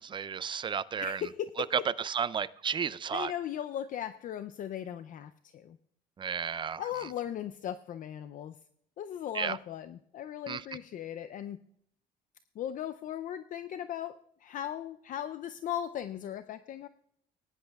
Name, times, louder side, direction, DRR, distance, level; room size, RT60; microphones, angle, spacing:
voice 1, 0.0-1.2 1.9-3.3 6.2-6.8 9.3-9.6 10.5-10.6, right 7 dB, 30° right, 18 dB, 0.4 m, -33 dB
voice 2, 1.0-1.7 3.1-5.8 6.8-8.6 9.0-11.6 12.6-16.9, left 10 dB, 55° left, 11 dB, 0.4 m, -38 dB
19.0 x 10.0 x 2.3 m, 0.71 s
cardioid pair, 110°, 17 cm